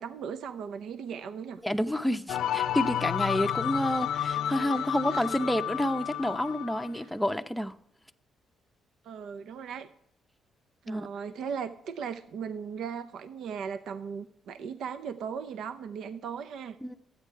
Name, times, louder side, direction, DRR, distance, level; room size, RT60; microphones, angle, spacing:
voice 1, 0.0-1.6 4.7-5.3 7.0-7.1 9.0-9.9 10.8-16.8, right 7 dB, 75° right, 0.6 m, -38 dB
voice 2, 1.6-7.7 10.9-11.1 16.8-17.0, equal, ahead, 0.7 m, -29 dB
sound 1, 2.3-6.9, left 10 dB, 75° left, 0.4 m, -31 dB
13.0 x 9.1 x 4.6 m
cardioid pair, 90°, 0 cm